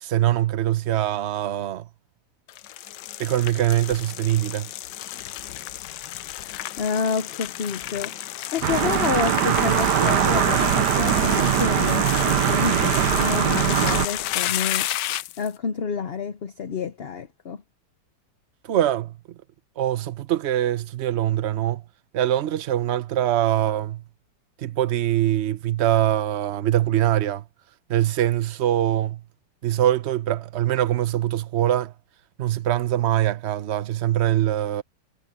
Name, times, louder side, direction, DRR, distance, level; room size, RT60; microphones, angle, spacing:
voice 1, 0.0-1.9 3.2-4.7 18.7-19.2 19.8-21.8 22.1-24.0 24.6-27.4 27.9-29.2 29.6-31.9 32.4-34.8, right 12 dB, 50° right, 0.9 m, -23 dB
sound 1, 2.5-15.5, left 14 dB, 90° left, 1.3 m, -31 dB
voice 2, 6.8-8.1 8.5-14.9 15.4-17.6, left 6 dB, 45° left, 0.9 m, -29 dB
sound 2, 8.6-14.1, right 10 dB, 85° right, 1.5 m, -21 dB
omnidirectional pair, 1.8 m